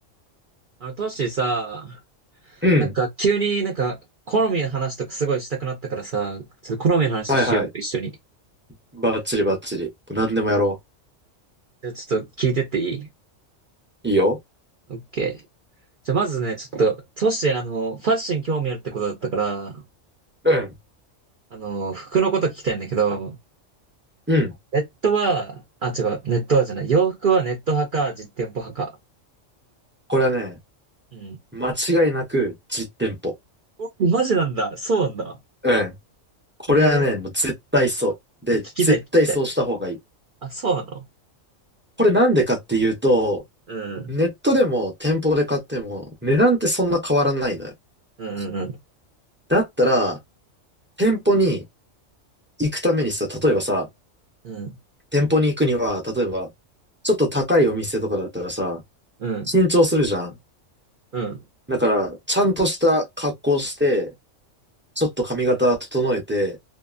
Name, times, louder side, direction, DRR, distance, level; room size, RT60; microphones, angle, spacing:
voice 1, 0.8-2.0 2.8-4.0 4.3-8.1 11.8-13.1 14.9-15.4 16.0-19.8 21.5-23.4 24.7-28.9 31.1-31.4 33.8-35.4 36.7-37.1 38.8-39.0 39.3-39.4 40.4-41.0 43.7-44.1 48.2-48.8 54.4-54.8 59.2-59.5 61.1-61.4, right 4 dB, 55° right, 0.6 m, -24 dB
voice 2, 2.6-2.9 7.3-7.7 8.9-10.8 14.0-14.4 20.4-20.7 24.3-24.5 30.1-30.6 31.5-33.3 35.6-35.9 36.7-38.1 38.5-40.0 42.0-43.4 44.1-47.7 49.5-50.2 51.0-51.6 52.6-53.9 55.1-56.5 57.0-58.8 59.5-60.4 61.7-64.1 65.0-66.6, equal, 15° right, 0.5 m, -21 dB
2.7 x 2.3 x 2.4 m
omnidirectional pair, 1.3 m